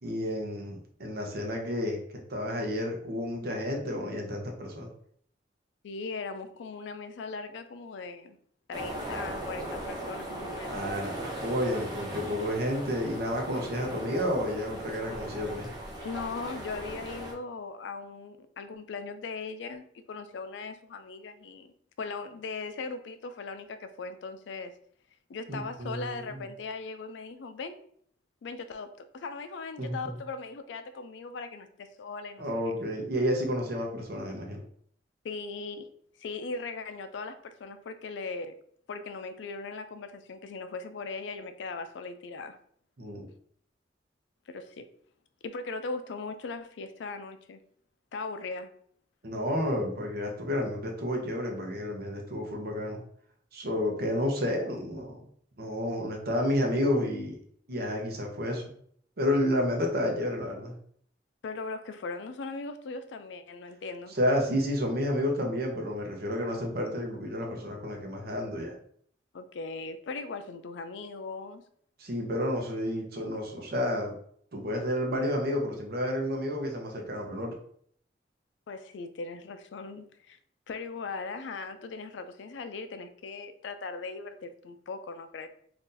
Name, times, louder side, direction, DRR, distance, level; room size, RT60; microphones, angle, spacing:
voice 1, 0.0-2.0 2.3-4.9 10.7-15.7 25.5-26.4 29.8-30.1 32.4-34.6 43.0-43.3 49.2-53.0 53.5-55.2 55.6-57.4 57.7-58.7 59.2-60.7 64.1-68.7 72.0-74.2 74.5-77.6, equal, 60° right, 2 dB, 0.7 m, -30 dB
voice 2, 5.8-8.4 8.7-10.8 13.6-13.9 16.0-24.7 25.3-27.8 28.4-28.9 29.1-32.5 35.2-35.9 36.2-38.5 38.9-42.6 44.5-44.9 45.4-47.6 48.1-48.7 61.4-64.1 69.3-71.6 78.7-80.4 80.7-85.5, left 4 dB, 75° left, 9 dB, 0.4 m, -39 dB
sound 1, 8.7-17.3, right 1 dB, 25° right, 0.7 m, -38 dB
2.7 x 2.5 x 3.7 m, 0.63 s
head